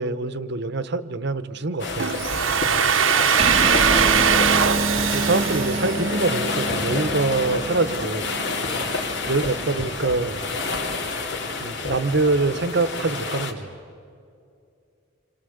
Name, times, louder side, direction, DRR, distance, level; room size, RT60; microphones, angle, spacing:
voice 1, 0.0-2.2 4.0-4.1 5.1-8.3 9.3-10.4 11.6-13.7, right 3 dB, 60° right, 13 dB, 1.0 m, -25 dB
sound 1, 1.8-13.5, left 3 dB, 65° left, 2.8 m, -29 dB
Domestic sounds home sounds, 2.0-6.8, right 7 dB, 85° right, 1.1 m, -21 dB
voice 2, 3.1-4.9 8.6-9.1, left 1 dB, 25° left, 3 dB, 2.1 m, -37 dB
sound 2, 3.4-10.2, right 2 dB, 30° right, 0.7 m, -28 dB
27.5 x 24.5 x 8.0 m, 2.5 s
head